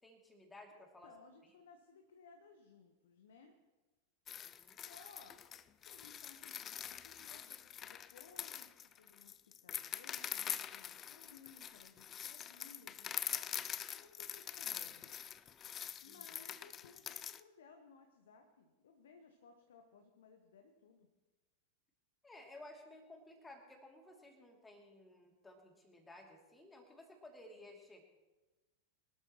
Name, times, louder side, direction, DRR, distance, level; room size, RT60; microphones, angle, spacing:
voice 1, 0.0-1.1 4.4-4.8 16.1-16.5 22.2-28.0, left 1 dB, 10° left, 2 dB, 2.7 m, -56 dB
voice 2, 0.7-3.6 4.6-5.4 5.8-13.1 13.9-15.3 16.0-21.1, left 5 dB, 60° left, 5 dB, 1.1 m, -61 dB
sound 1, 4.3-17.4, left 9 dB, 25° left, 0.4 m, -44 dB
23.5 x 12.5 x 3.1 m, 1.2 s
figure-of-eight pair, 90°, 0 cm